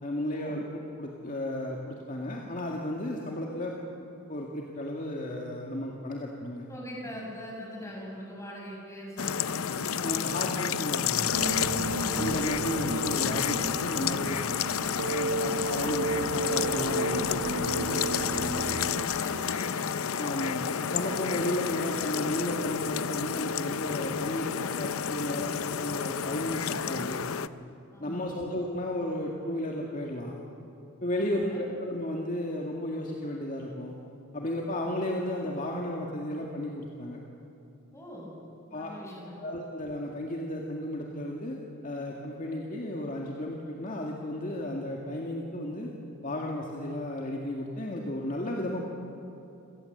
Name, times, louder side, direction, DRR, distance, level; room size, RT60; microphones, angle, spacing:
voice 1, 0.0-3.8 4.3-6.7 10.0-11.5 12.2-14.4 15.1-18.7 20.1-27.2 28.0-30.3 31.0-34.0 34.3-37.2 38.7-38.9 39.4-41.6 41.8-45.9 46.2-48.9, left 1 dB, 40° left, -1 dB, 2.0 m, -34 dB
voice 2, 6.7-9.8 11.9-12.4 19.1-19.8 27.9-28.4 31.1-31.6 37.9-38.3 38.7-39.3, equal, 15° left, -2 dB, 6.8 m, -42 dB
sound 1, 9.2-27.5, left 7 dB, 80° left, 0.7 m, -30 dB
sound 2, 11.3-19.1, right 2 dB, 65° right, 1.3 m, -33 dB
27.0 x 18.0 x 8.0 m, 2.8 s
head